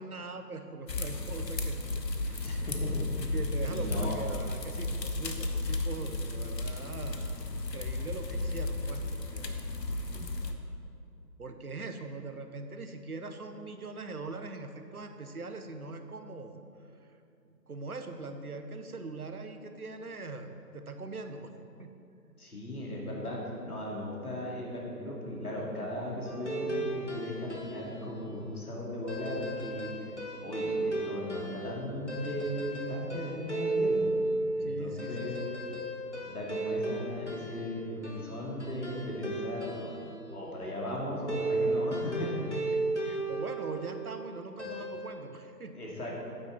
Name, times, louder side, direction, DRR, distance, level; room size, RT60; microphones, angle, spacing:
voice 1, 0.0-2.7 3.3-9.6 9.9-10.1 11.4-16.6 17.7-21.5 21.8-21.9 34.6-35.4 42.5-45.8, right 3 dB, 60° right, 7 dB, 0.8 m, -41 dB
sound 1, 0.9-10.5, left 2 dB, 75° left, 1.0 m, -34 dB
voice 2, 2.4-3.3 3.7-4.2 22.4-29.9 30.4-34.1 34.6-35.4 36.2-40.0 40.3-42.5 45.7-46.2, left 1 dB, 60° left, -4 dB, 2.4 m, -37 dB
sound 2, 26.2-28.1 29.1-40.2 41.3-44.2 44.6-45.1, right 2 dB, 45° left, 0.9 m, -34 dB
8.9 x 8.4 x 3.9 m, 2.6 s
figure-of-eight pair, 180°, 50 cm